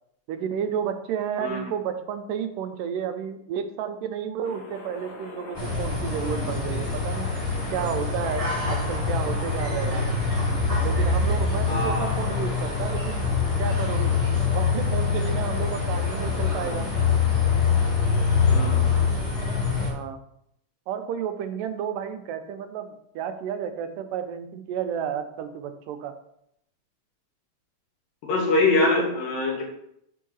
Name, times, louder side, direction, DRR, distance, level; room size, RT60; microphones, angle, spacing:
voice 1, 0.3-7.3 7.7-10.1 10.8-13.3 13.6-14.2 14.5-16.9 19.8-20.2 20.9-26.2, right 8 dB, 85° right, 8 dB, 2.3 m, -31 dB
sound 1, 4.4-19.1, left 4 dB, 65° left, 2.1 m, -41 dB
sound 2, 5.5-19.9, left 4 dB, 15° right, 1.4 m, -24 dB
voice 2, 11.7-12.1 18.5-19.0 28.2-29.6, left 2 dB, 85° left, 0 dB, 3.4 m, -24 dB
6.0 x 4.6 x 6.2 m, 0.76 s
omnidirectional pair, 3.8 m